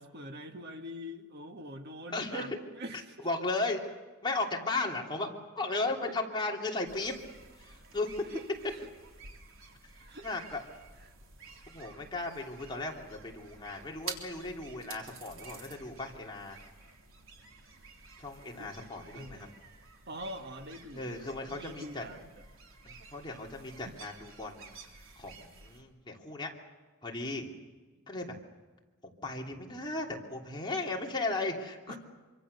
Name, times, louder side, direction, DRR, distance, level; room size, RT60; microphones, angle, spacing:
voice 1, 0.0-3.3 6.0-6.1 8.2-8.9 10.0-10.3 11.0-11.1 18.6-18.7 19.1-19.5 20.1-21.2 21.4-22.5 23.8-24.0 31.9-32.0, equal, 50° right, 5 dB, 1.8 m, -44 dB
voice 2, 2.1-2.4 3.2-3.9 4.2-7.1 7.6-8.1 10.2-10.6 11.7-16.6 18.2-19.4 20.9-22.0 22.9-24.8 25.2-26.5 27.0-27.5 28.1-28.4 29.0-32.0, left 2 dB, 20° left, 0 dB, 3.1 m, -36 dB
sound 1, 6.9-25.8, right 4 dB, 70° right, 3.6 m, -51 dB
26.5 x 25.0 x 6.8 m, 1.3 s
head